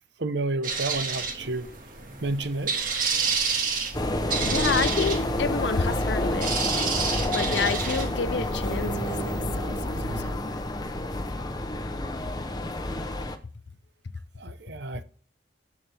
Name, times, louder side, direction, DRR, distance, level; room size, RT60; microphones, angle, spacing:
voice 1, 0.2-1.7 2.2-3.1 14.4-15.0, right 2 dB, 65° right, 0.8 m, -31 dB
sound 1, 0.6-9.4, right 5 dB, 45° right, 1.8 m, -30 dB
sound 2, 3.9-13.4, left 1 dB, 20° left, 0.7 m, -30 dB
sound 3, 3.9-10.2, equal, 10° right, 4.1 m, -34 dB
voice 2, 4.4-6.6 7.3-10.6, left 5 dB, 65° left, 0.6 m, -30 dB
11.5 x 7.3 x 3.4 m
head